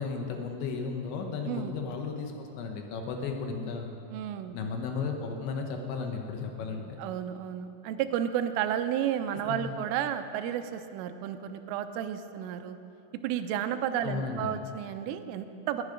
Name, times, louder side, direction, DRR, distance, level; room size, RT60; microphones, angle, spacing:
voice 1, 0.0-3.9 4.5-7.0 9.5-9.7 14.0-14.6, left 5 dB, 75° left, 3 dB, 3.0 m, -34 dB
voice 2, 4.1-4.6 6.6-12.8 13.2-15.8, right 10 dB, 85° right, 9 dB, 3.1 m, -32 dB
20.0 x 10.5 x 5.0 m, 2.8 s
omnidirectional pair, 5.8 m